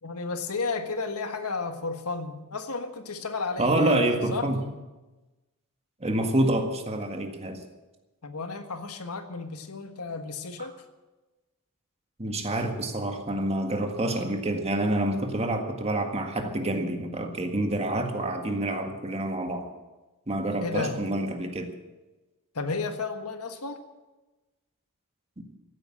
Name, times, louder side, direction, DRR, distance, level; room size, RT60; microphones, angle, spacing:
voice 1, 0.0-4.1 4.3-4.5 8.2-10.7 20.6-21.0 22.5-23.8, left 4 dB, 85° left, 7 dB, 1.5 m, -33 dB
voice 2, 3.6-4.6 6.0-7.6 12.2-19.7 20.3-21.7, right 1 dB, 30° right, 4 dB, 1.8 m, -27 dB
15.5 x 8.8 x 8.7 m, 1.1 s
head